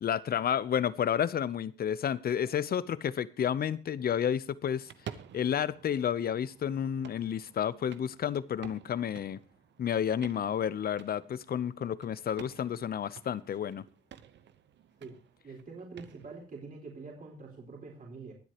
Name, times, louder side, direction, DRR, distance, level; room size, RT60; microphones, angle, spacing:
voice 1, 0.0-4.9 5.3-9.4 9.8-13.8, left 9 dB, 50° left, 0.7 m, -31 dB
sound 1, 4.8-16.4, right 9 dB, 65° right, 1.0 m, -51 dB
voice 2, 15.4-18.3, right 4 dB, 45° right, 4.3 m, -45 dB
23.5 x 8.1 x 2.9 m
cardioid pair, 90°, 20 cm